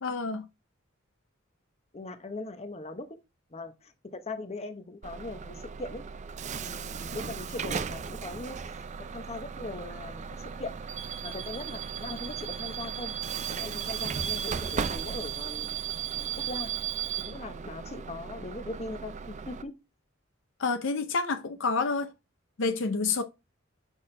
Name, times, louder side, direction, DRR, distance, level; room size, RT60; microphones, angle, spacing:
voice 1, 0.0-0.5 20.6-22.1 22.6-23.2, left 4 dB, 65° left, 0.6 m, -28 dB
voice 2, 1.9-3.2 3.5-6.0 6.5-8.9 9.1-10.2 10.6-10.7 11.0-13.1 13.5-15.8 16.1-16.7 17.3-19.7, left 2 dB, 30° left, 0.9 m, -40 dB
Bus / Alarm, 5.0-19.6, right 7 dB, 35° right, 0.4 m, -36 dB
6.3 x 5.8 x 3.3 m
head